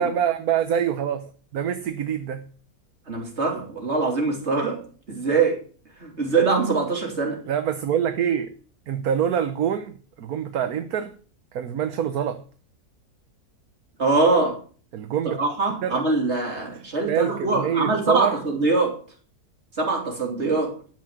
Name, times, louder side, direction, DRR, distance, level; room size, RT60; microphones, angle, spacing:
voice 1, 0.0-2.4 7.5-8.5 8.9-11.1 11.5-12.4 14.9-15.4 15.8-16.0 17.0-18.3, right 8 dB, 65° right, 8 dB, 1.4 m, -25 dB
voice 2, 3.1-4.8 5.1-5.6 6.0-7.4 14.0-14.6 15.4-18.9 19.8-20.7, right 3 dB, 40° right, 1 dB, 3.3 m, -23 dB
13.0 x 6.3 x 6.2 m, 0.41 s
omnidirectional pair, 1.7 m